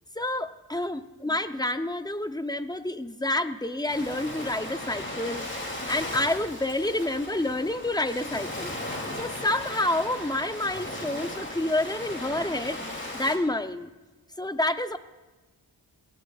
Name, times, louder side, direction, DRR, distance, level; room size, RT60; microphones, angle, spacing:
voice 1, 0.2-8.7 9.2-12.8 13.1-13.9 14.4-15.0, left 1 dB, 10° left, 10 dB, 0.6 m, -29 dB
Ocean, 3.9-13.4, left 1 dB, 30° left, 2.8 m, -36 dB
22.0 x 16.5 x 2.4 m, 1.2 s
wide cardioid pair, 85°, 41 cm